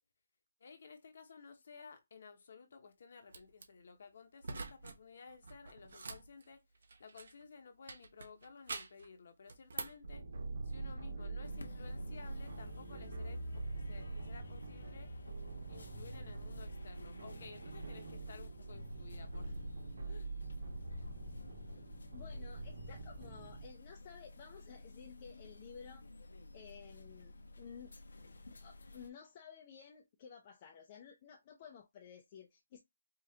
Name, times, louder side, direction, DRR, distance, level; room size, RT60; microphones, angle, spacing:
voice 1, 0.6-6.6 7.0-10.3 10.6-15.1 15.7-19.6 20.1-20.3, left 5 dB, 40° left, 0.8 m, -55 dB
sound 1, 3.3-3.7 4.4-5.0 5.3-7.4 7.9-9.1 9.5-10.1, right 3 dB, 50° right, 0.8 m, -46 dB
sound 2, 10.0-23.7, right 2 dB, 85° right, 1.7 m, -44 dB
sound 3, 11.4-29.1, left 2 dB, 75° left, 0.9 m, -55 dB
voice 2, 22.1-26.1 26.5-27.9 28.6-32.8, left 7 dB, 20° left, 0.5 m, -54 dB
4.9 x 2.4 x 2.8 m
hypercardioid pair, 180°, 0 cm